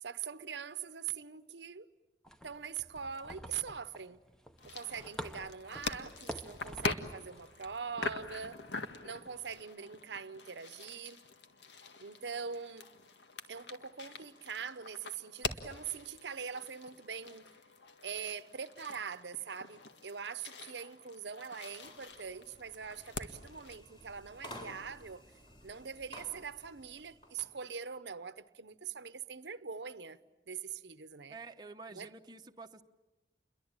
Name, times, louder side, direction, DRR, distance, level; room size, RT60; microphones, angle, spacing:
voice 1, 0.0-1.9 2.4-4.2 4.6-8.6 9.0-11.2 12.0-12.9 13.5-17.5 18.0-25.2 25.6-30.2 30.5-31.4 31.9-32.1, right 6 dB, 80° right, 0.9 m, -43 dB
sound 1, 2.2-9.6, equal, 5° left, 1.0 m, -49 dB
sound 2, 4.6-23.8, left 3 dB, 85° left, 1.8 m, -44 dB
sound 3, 21.7-27.6, equal, 25° left, 4.0 m, -53 dB
voice 2, 31.3-32.8, right 4 dB, 25° right, 0.9 m, -49 dB
29.5 x 22.5 x 8.9 m
head